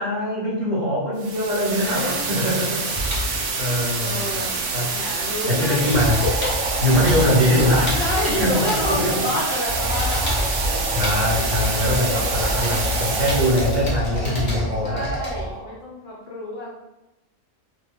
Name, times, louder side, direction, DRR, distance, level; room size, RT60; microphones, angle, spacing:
voice 1, 0.0-4.5 4.7-4.9 5.5-6.2 6.8-8.0 8.4-8.5 8.8-9.1 10.9-15.1, left 1 dB, 65° right, -8 dB, 1.6 m, -22 dB
sound 1, 1.2-13.8, right 4 dB, 90° right, 1.0 m, -27 dB
voice 2, 1.8-2.5 4.0-6.3 7.7-10.4 10.7-11.0 12.6-12.9 14.8-16.7, left 2 dB, 60° left, -5 dB, 0.7 m, -29 dB
sound 2, 2.9-5.2 5.4-15.6, left 1 dB, 20° left, 0.8 m, -28 dB
sound 3, 5.7-15.7, right 1 dB, 30° right, 0.5 m, -32 dB
2.9 x 2.3 x 3.5 m, 1.0 s
omnidirectional pair, 1.4 m